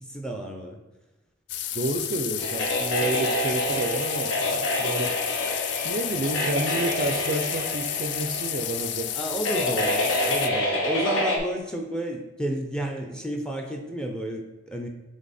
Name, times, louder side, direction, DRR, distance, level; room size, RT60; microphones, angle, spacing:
voice 1, 0.0-0.8 9.2-14.9, right 1 dB, 5° left, 2 dB, 0.6 m, -31 dB
sound 1, 1.5-10.5, left 12 dB, 55° left, 0.3 m, -32 dB
voice 2, 1.7-5.1 5.8-9.1, right 2 dB, 45° right, 5 dB, 0.5 m, -30 dB
sound 2, 2.4-11.4, left 1 dB, 70° left, 1.3 m, -28 dB
7.2 x 3.4 x 4.2 m, 1.1 s
head